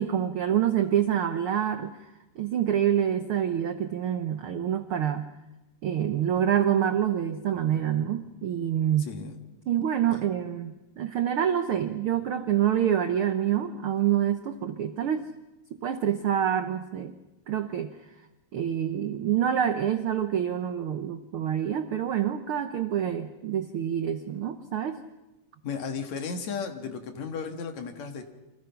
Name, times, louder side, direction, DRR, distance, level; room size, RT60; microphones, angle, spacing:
voice 1, 0.0-1.9 2.4-5.3 5.8-9.1 9.7-15.2 15.8-17.1 17.5-17.9 18.5-25.0, right 10 dB, 80° right, 8 dB, 1.2 m, -26 dB
voice 2, 25.6-28.2, left 5 dB, 60° left, 5 dB, 2.9 m, -34 dB
29.5 x 25.0 x 5.8 m, 1.0 s
omnidirectional pair, 3.8 m